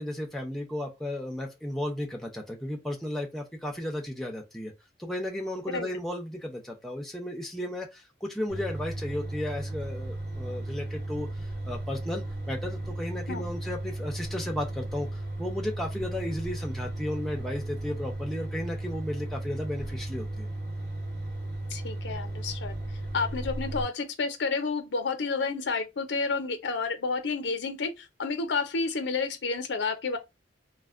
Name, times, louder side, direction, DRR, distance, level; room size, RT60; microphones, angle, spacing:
voice 1, 0.0-4.7 5.0-20.5, left 1 dB, ahead, 0.5 m, -34 dB
sound 1, 8.5-23.9, right 1 dB, 80° right, 1.4 m, -35 dB
voice 2, 21.7-22.8 23.1-30.2, left 4 dB, 85° left, 0.6 m, -30 dB
3.2 x 2.1 x 2.4 m
head